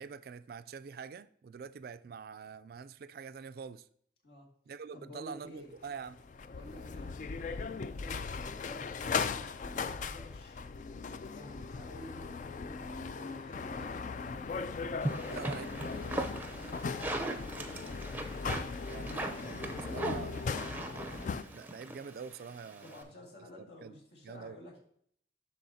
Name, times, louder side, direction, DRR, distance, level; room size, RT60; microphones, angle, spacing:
voice 1, 0.0-3.9 4.7-6.2 15.3-16.1 18.8-20.5 21.4-23.1 23.8-23.9 24.2-24.6, right 6 dB, 55° right, 0.3 m, -45 dB
voice 2, 4.9-5.7 6.5-7.1 7.7-10.6 11.3-14.0 14.9-15.8 16.6-18.0 22.8-24.8, left 1 dB, 65° left, 2.0 m, -51 dB
sound 1, 5.9-21.4, left 5 dB, 45° left, 0.3 m, -38 dB
sound 2, 15.0-23.0, right 1 dB, 10° right, 0.6 m, -39 dB
12.0 x 4.2 x 2.7 m
head